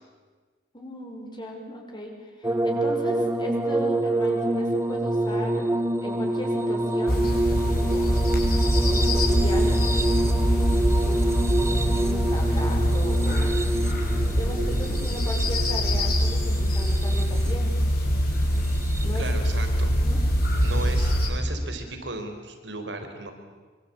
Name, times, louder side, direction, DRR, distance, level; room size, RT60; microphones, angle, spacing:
voice 1, 0.7-5.7 6.0-8.4 8.8-13.5 14.3-17.8 19.0-19.3 19.9-20.2, equal, 25° left, 1 dB, 5.8 m, -37 dB
sound 1, 2.4-17.7 18.6-19.3 20.7-20.8, right 1 dB, 15° right, 1.1 m, -27 dB
sound 2, 7.1-21.3, equal, 55° left, 7.1 m, -23 dB
voice 2, 19.2-19.9 20.6-23.3, right 2 dB, 80° right, 6 dB, 4.6 m, -35 dB
25.5 x 25.5 x 8.8 m, 1.4 s
head